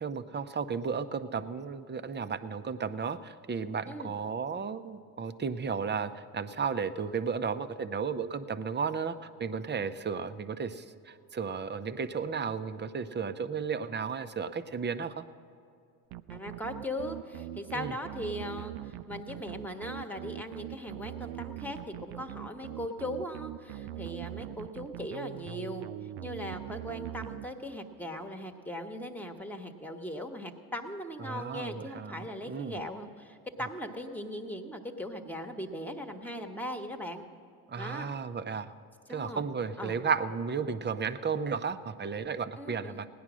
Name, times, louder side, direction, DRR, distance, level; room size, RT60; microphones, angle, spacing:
voice 1, 0.0-15.2 17.7-17.9 31.3-32.8 37.7-38.7 39.1-43.1, right 6 dB, 25° right, 11 dB, 0.7 m, -34 dB
sound 1, 16.1-28.0, right 13 dB, 80° right, 0.5 m, -42 dB
voice 2, 16.3-25.9 26.2-37.3 37.8-38.1 39.1-39.4 39.8-40.0 42.6-43.0, left 1 dB, 5° left, 5 dB, 1.3 m, -39 dB
17.0 x 10.5 x 6.2 m, 2.5 s
supercardioid pair, 80°, 43 cm